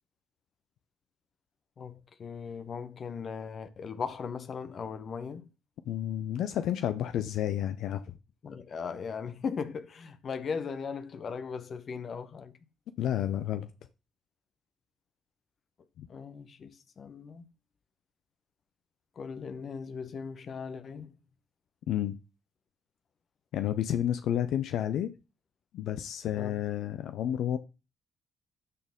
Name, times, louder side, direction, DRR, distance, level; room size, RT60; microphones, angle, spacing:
voice 1, 2.2-5.4 8.4-12.5 16.1-17.4 19.2-21.1 26.3-26.6, left 6 dB, 55° left, 0.9 m, -38 dB
voice 2, 5.9-8.0 13.0-13.7 16.0-16.1 21.9-22.2 23.5-25.1 25.7-27.6, left 11 dB, 70° left, 0.5 m, -30 dB
12.0 x 4.3 x 3.6 m
hypercardioid pair, 45°, 0 cm